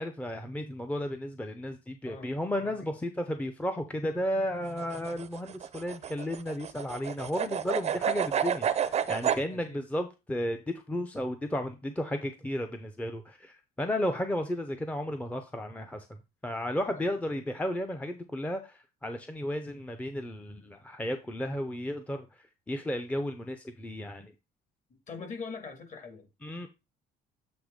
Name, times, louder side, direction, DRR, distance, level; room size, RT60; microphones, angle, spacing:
voice 1, 0.0-16.1 16.4-24.3 26.4-26.7, left 1 dB, 10° left, 0.7 m, -33 dB
sound 1, 4.7-9.4, right 8 dB, 40° right, 0.6 m, -30 dB
voice 2, 25.1-26.3, left 4 dB, 45° left, 2.2 m, -42 dB
7.9 x 3.1 x 5.1 m
cardioid pair, 110°, 17 cm